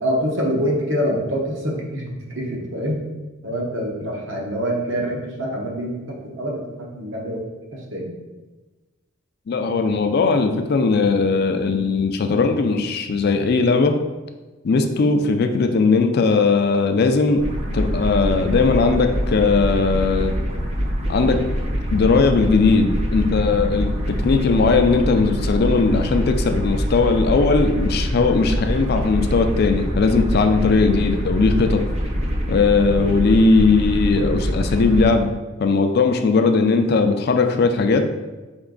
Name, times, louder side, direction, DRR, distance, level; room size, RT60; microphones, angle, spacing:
voice 1, 0.0-3.0 3.4-7.4 7.7-8.1, equal, 60° right, -1 dB, 0.9 m, -25 dB
voice 2, 9.5-14.0 14.6-17.5 17.7-20.3 21.1-21.4 21.9-31.8 32.5-35.3 35.6-38.1, left 4 dB, 50° left, 7 dB, 0.4 m, -18 dB
sound 1, 17.4-35.1, equal, 30° right, 0.7 m, -24 dB
4.4 x 3.1 x 3.8 m, 1.2 s
head